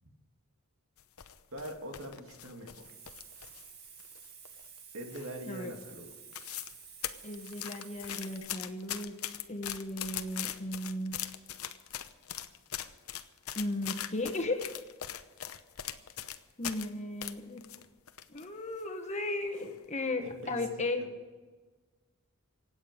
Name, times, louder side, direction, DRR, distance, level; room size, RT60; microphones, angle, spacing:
sound 1, 1.0-3.7 4.0-4.8 5.1-5.5 5.8-5.9 6.1-6.8 7.0-16.9 17.2-18.5 18.8-18.9 19.5-19.9 20.3-20.5, left 11 dB, 75° left, 0.9 m, -41 dB
voice 1, 1.5-3.0 4.9-6.1 20.2-21.1, right 1 dB, 65° right, 3 dB, 2.4 m, -43 dB
Hiss, 2.6-8.4, right 6 dB, 50° right, 2.4 m, -52 dB
voice 2, 7.2-9.1 9.5-11.2 13.5-14.7 16.6-17.6 18.3-21.0, left 2 dB, 30° left, 5 dB, 1.4 m, -35 dB
24.5 x 9.1 x 5.2 m, 1.3 s
head